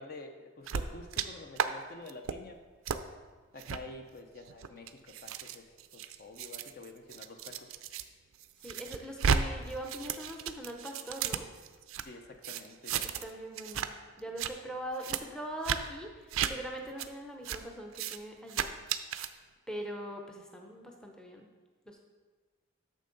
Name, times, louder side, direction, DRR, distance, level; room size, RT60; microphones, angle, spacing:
voice 1, 0.0-2.6 3.5-5.7 5.9-7.7 12.0-12.9, left 2 dB, 45° left, 5 dB, 0.6 m, -48 dB
sound 1, 0.7-1.3 1.6-1.7 2.1-2.4 2.9-3.0 3.6-3.8 4.5-8.0 8.4-9.4 9.7-12.0 12.4-13.3 13.6-13.9 14.2-14.5 15.0-15.2 15.6-15.8 16.3-16.5 17.0-17.1 17.5-17.6 17.9-18.2 18.5-19.3, right 7 dB, 75° right, 0.4 m, -33 dB
voice 2, 8.6-11.5 13.0-13.9 14.2-18.8 19.7-21.5 21.9-22.0, right 1 dB, 5° left, 2 dB, 0.6 m, -42 dB
9.1 x 6.6 x 3.9 m, 1.4 s
head